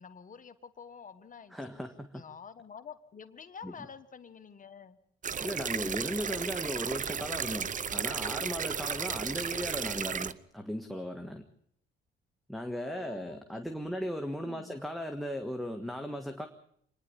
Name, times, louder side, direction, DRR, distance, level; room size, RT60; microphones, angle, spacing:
voice 1, 0.0-1.7 2.1-5.0 8.9-9.3 12.7-13.9 14.4-14.8, left 6 dB, 40° left, 10 dB, 1.4 m, -49 dB
voice 2, 1.5-2.2 3.6-3.7 5.4-11.4 12.5-16.5, equal, ahead, 4 dB, 1.6 m, -37 dB
sound 1, 5.2-10.3, right 7 dB, 40° right, 0.8 m, -34 dB
26.5 x 10.5 x 9.9 m, 0.69 s
cardioid pair, 90°, 20 cm